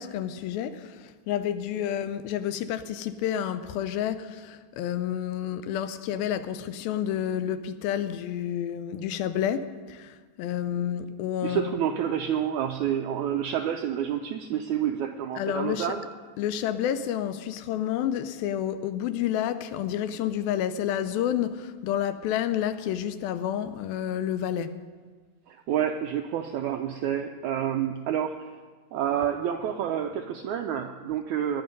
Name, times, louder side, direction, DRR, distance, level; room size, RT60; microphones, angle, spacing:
voice 1, 0.0-11.7 15.4-15.9 16.4-24.7, left 10 dB, 90° left, 2.6 m, -30 dB
voice 2, 11.4-16.0 25.5-28.6 28.9-31.6, right 9 dB, 85° right, 1.7 m, -29 dB
20.0 x 10.5 x 5.3 m
omnidirectional pair, 4.1 m